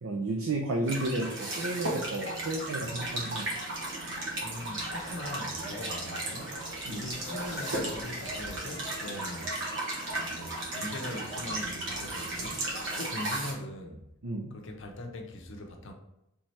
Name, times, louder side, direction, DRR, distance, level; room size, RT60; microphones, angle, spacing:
voice 1, 0.0-3.5 6.9-7.0 14.2-14.6, right 2 dB, 70° right, 1 dB, 0.5 m, -32 dB
sound 1, 0.9-13.5, right 1 dB, 55° right, 1.1 m, -35 dB
voice 2, 4.4-6.6 6.9-9.5 10.2-12.6 13.0-14.0 14.5-15.9, left 1 dB, 55° left, 3 dB, 0.6 m, -41 dB
sound 2, 4.8-11.4, right 1 dB, 30° right, 1.0 m, -47 dB
sound 3, 6.8-8.8 11.5-12.8, left 1 dB, 15° left, 0.8 m, -50 dB
3.4 x 3.2 x 4.2 m, 0.88 s
head